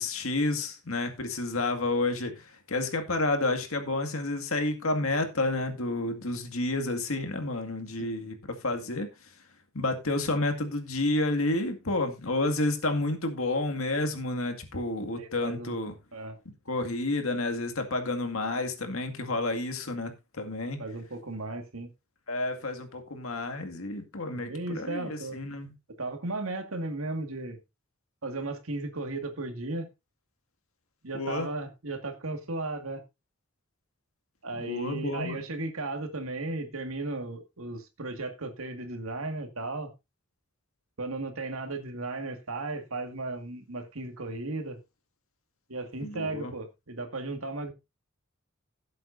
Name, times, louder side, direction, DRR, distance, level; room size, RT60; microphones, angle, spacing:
voice 1, 0.0-9.3 9.7-15.9 16.7-20.8 22.3-25.7 31.1-31.5 34.6-35.4 46.0-46.5, left 2 dB, 75° left, 2.1 m, -30 dB
voice 2, 15.2-15.8 16.1-16.4 20.8-21.9 24.3-25.4 26.0-27.6 28.2-29.9 31.0-33.0 34.4-39.9 41.0-44.8 45.7-47.7, right 2 dB, 75° right, 1.9 m, -35 dB
16.5 x 7.7 x 2.6 m
head